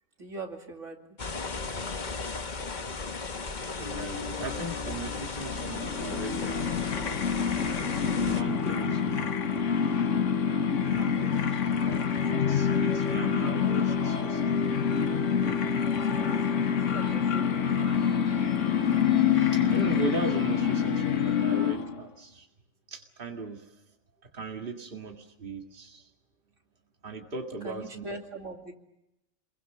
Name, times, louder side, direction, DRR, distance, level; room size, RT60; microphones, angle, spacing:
voice 1, 0.2-1.1 16.0-17.6 27.6-28.7, right 3 dB, 80° right, 3 dB, 3.0 m, -41 dB
sound 1, 1.2-8.4, left 4 dB, 40° left, 1.3 m, -36 dB
sound 2, 3.8-21.7, left 11 dB, 65° left, 2.3 m, -32 dB
voice 2, 3.8-6.8 8.2-9.4 10.8-14.9 15.3-15.7 19.5-22.5 22.9-23.7 24.3-26.1 27.0-28.2, right 3 dB, 45° right, 3 dB, 2.2 m, -38 dB
sound 3, 5.4-22.1, left 6 dB, 80° left, 1.5 m, -28 dB
27.5 x 22.5 x 6.7 m, 0.90 s
omnidirectional pair, 1.3 m